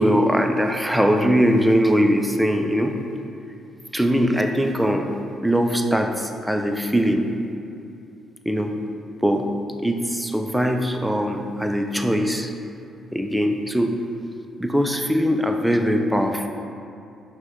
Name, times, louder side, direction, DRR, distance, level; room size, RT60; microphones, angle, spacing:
voice 1, 0.0-2.9 3.9-5.1 5.4-7.3 8.5-8.7 9.2-9.5 9.8-12.5 13.1-14.0 14.6-16.5, equal, 5° right, 4 dB, 0.3 m, -21 dB
5.0 x 2.2 x 3.6 m, 2.6 s
cardioid pair, 90°, 0 cm